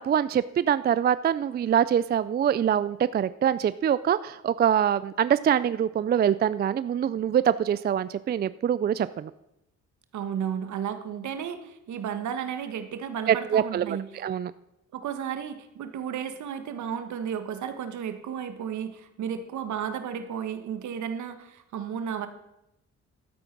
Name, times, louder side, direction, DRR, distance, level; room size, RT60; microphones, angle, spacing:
voice 1, 0.0-9.3 13.3-14.5, right 9 dB, 35° right, 16 dB, 0.4 m, -24 dB
voice 2, 10.1-14.2 14.9-22.3, right 8 dB, 70° right, 9 dB, 1.5 m, -33 dB
12.0 x 9.0 x 6.0 m, 0.86 s
cardioid pair, 90°, 30 cm